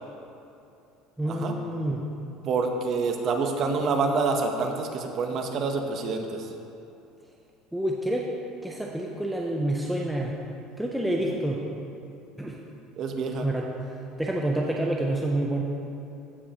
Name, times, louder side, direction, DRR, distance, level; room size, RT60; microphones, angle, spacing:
voice 1, 1.2-2.0 7.7-8.3 8.6-10.3 10.8-11.6 12.4-12.6 13.4-13.7 14.2-15.6, right 1 dB, ahead, -2 dB, 0.4 m, -28 dB
voice 2, 2.5-6.5 11.3-11.4 13.0-13.5, right 4 dB, 35° right, 4 dB, 0.7 m, -27 dB
15.0 x 5.3 x 2.8 m, 2.7 s
cardioid pair, 165°, 0 cm